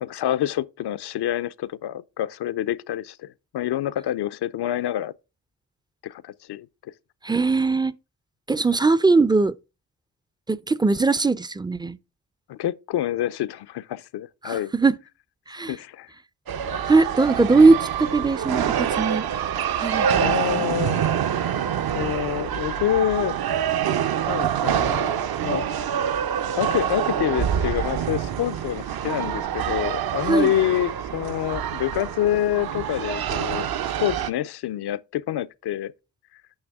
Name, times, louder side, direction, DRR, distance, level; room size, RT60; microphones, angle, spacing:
voice 1, 0.0-5.1 6.0-6.7 12.5-14.7 15.7-16.1 16.7-16.8 20.2-21.0 21.9-23.4 24.3-25.7 26.5-35.9, left 12 dB, 70° left, 0.6 m, -27 dB
voice 2, 7.2-7.9 8.5-9.5 10.5-12.0 14.4-14.9 15.5-15.8 16.9-19.3 19.8-20.6 30.3-30.5, right 3 dB, 10° right, 0.3 m, -20 dB
sound 1, 16.5-34.3, right 9 dB, 60° right, 0.6 m, -26 dB
8.8 x 5.9 x 3.5 m
cardioid pair, 60°, 42 cm